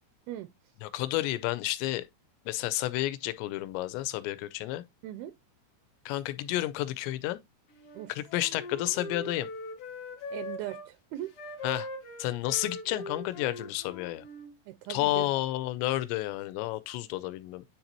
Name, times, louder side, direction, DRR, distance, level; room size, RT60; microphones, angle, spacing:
voice 1, 0.8-2.1 2.5-4.8 6.1-7.4 8.1-9.5 11.6-11.9 12.2-14.3 14.9-17.6, left 16 dB, 90° left, 2.9 m, -31 dB
voice 2, 5.0-5.3 7.9-8.1 10.3-11.3 14.7-15.3, right 14 dB, 85° right, 2.2 m, -39 dB
Wind instrument woodwind instrument, 7.7-10.9 11.3-14.5, left 2 dB, 70° left, 1.4 m, -41 dB
9.7 x 4.0 x 2.9 m
omnidirectional pair, 4.9 m